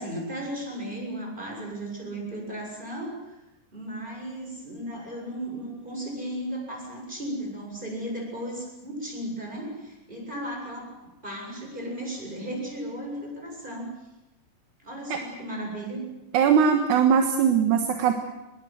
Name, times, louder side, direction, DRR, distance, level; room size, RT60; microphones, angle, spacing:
voice 1, 0.0-3.4 3.7-10.9 11.2-14.0 14.8-16.1, right 1 dB, 15° right, 0 dB, 7.9 m, -35 dB
voice 2, 16.3-18.1, right 7 dB, 65° right, 6 dB, 2.7 m, -20 dB
25.0 x 21.0 x 7.9 m, 0.99 s
omnidirectional pair, 4.0 m